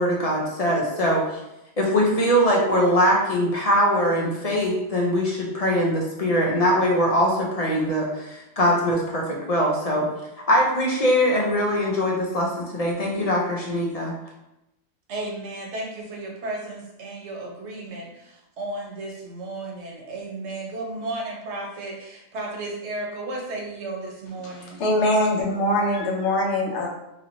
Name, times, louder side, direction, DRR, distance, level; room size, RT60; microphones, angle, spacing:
voice 1, 0.0-1.4 1.8-10.1 10.5-14.2, equal, 45° left, -2 dB, 0.5 m, -22 dB
voice 2, 15.1-24.8, right 2 dB, 80° right, -1 dB, 1.0 m, -34 dB
voice 3, 24.4-26.9, left 1 dB, 85° left, -2 dB, 1.0 m, -23 dB
2.9 x 2.9 x 2.5 m, 0.91 s
omnidirectional pair, 1.1 m